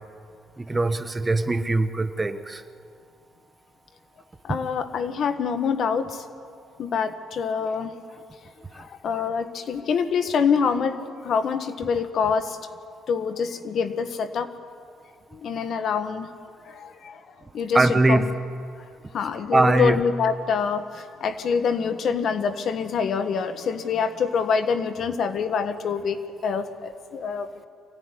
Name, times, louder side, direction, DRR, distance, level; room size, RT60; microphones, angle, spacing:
voice 1, 0.6-2.6 4.5-4.6 17.7-18.3 19.5-20.0, right 2 dB, 20° right, 9 dB, 0.9 m, -21 dB
voice 2, 4.4-6.2 6.8-7.9 8.7-12.6 13.1-14.5 15.3-16.3 16.6-17.2 17.5-18.3 19.1-27.7, left 6 dB, 55° left, 9 dB, 1.4 m, -26 dB
25.0 x 16.0 x 9.8 m, 2.4 s
cardioid pair, 125°, 0 cm